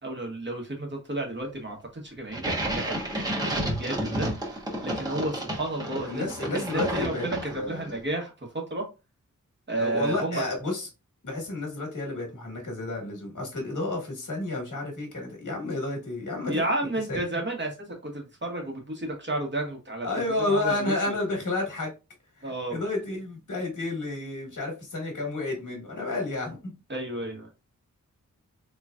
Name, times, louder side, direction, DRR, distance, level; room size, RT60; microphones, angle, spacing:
voice 1, 0.0-6.2 6.5-8.8 9.7-10.5 16.5-21.1 22.4-22.8 26.9-27.5, right 1 dB, 35° right, 1.2 m, -32 dB
sound 1, 2.3-7.8, right 1 dB, 10° right, 1.0 m, -31 dB
voice 2, 6.1-8.0 9.8-10.9 11.2-16.6 17.1-17.2 20.0-21.9 22.4-26.7, left 2 dB, 70° left, 1.5 m, -31 dB
3.8 x 3.1 x 2.3 m
wide cardioid pair, 115°, 32 cm